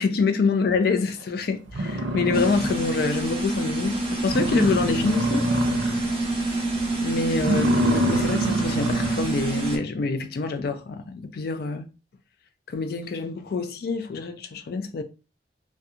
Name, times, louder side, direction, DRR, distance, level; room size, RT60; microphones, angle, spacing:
voice 1, 0.0-5.5 7.0-11.9 12.7-15.0, left 4 dB, 60° left, 0.3 m, -26 dB
sound 1, 1.2-1.3 1.7-3.1 3.5-3.6 3.9-4.0 4.3-6.2 6.5-6.8 7.3-9.3, right 1 dB, 85° right, 0.5 m, -26 dB
sound 2, 2.3-9.8, right 2 dB, 35° right, 0.8 m, -27 dB
2.5 x 2.2 x 2.6 m
head